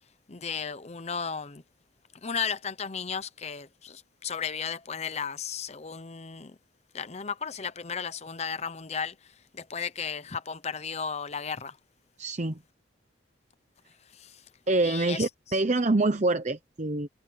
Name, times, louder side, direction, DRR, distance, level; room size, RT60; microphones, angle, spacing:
voice 1, 0.3-1.6 2.2-6.6 6.9-9.2 9.5-11.8 14.2-14.4 14.8-15.3, left 6 dB, 35° left, 0.7 m, -34 dB
voice 2, 12.2-12.6 14.7-17.1, right 2 dB, 40° right, 0.9 m, -26 dB
head